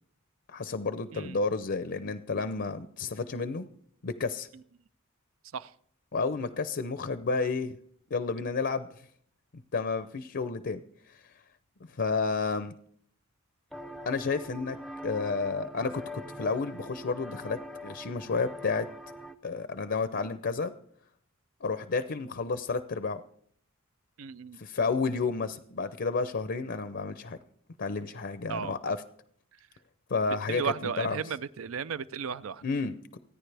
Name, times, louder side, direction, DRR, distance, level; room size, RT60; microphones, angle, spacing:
voice 1, 0.5-3.7 4.0-4.5 6.1-7.8 8.1-8.9 9.7-10.8 12.0-12.7 14.1-14.8 15.0-18.9 19.4-20.7 21.6-23.2 24.6-27.4 27.8-29.0 30.1-31.2 32.6-33.2, left 4 dB, 55° left, 11 dB, 0.6 m, -31 dB
sound 1, 13.7-19.4, equal, ahead, 0.6 m, -43 dB
voice 2, 24.2-24.6 28.5-28.8 30.3-32.6, right 7 dB, 70° right, 16 dB, 0.5 m, -35 dB
28.5 x 9.9 x 3.4 m, 0.64 s
head